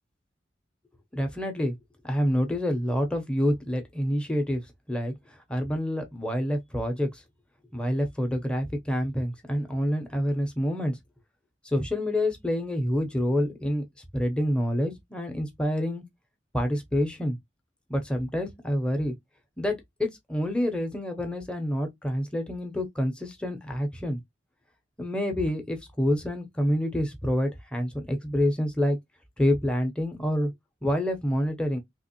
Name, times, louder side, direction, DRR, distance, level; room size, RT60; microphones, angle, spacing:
voice 1, 1.1-1.7 2.0-4.6 4.9-7.2 7.7-11.0 11.6-13.8 14.1-16.0 16.5-17.4 17.9-19.1 19.6-24.2 25.0-29.0 29.4-30.5 30.8-31.8, equal, 5° left, 0.6 m, -27 dB
3.4 x 2.9 x 2.8 m
head